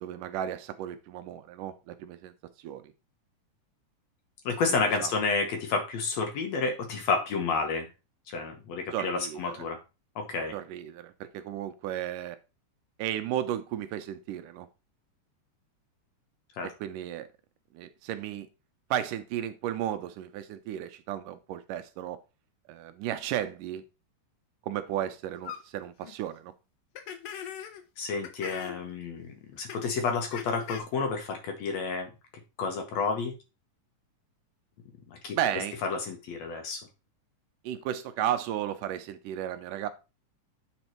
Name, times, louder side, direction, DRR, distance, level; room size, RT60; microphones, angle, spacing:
voice 1, 0.0-2.3 2.6-2.9 5.0-5.1 8.9-9.6 10.5-12.4 13.0-14.7 16.6-17.3 17.7-18.5 18.9-22.2 22.7-23.8 24.6-26.5 35.3-35.8 37.6-39.9, right 11 dB, 80° right, 2.2 m, -34 dB
voice 2, 4.5-7.9 8.3-9.8 10.2-10.5 16.6-16.7 28.0-32.1 32.6-33.3 35.1-35.4 35.8-36.9, left 4 dB, 65° left, 2.1 m, -30 dB
sound 1, 25.4-25.6 26.0-26.1 27.0-27.8 28.2-28.8 29.7-29.8 30.3-30.8, left 9 dB, 80° left, 2.6 m, -40 dB
9.1 x 4.3 x 4.4 m
omnidirectional pair, 3.8 m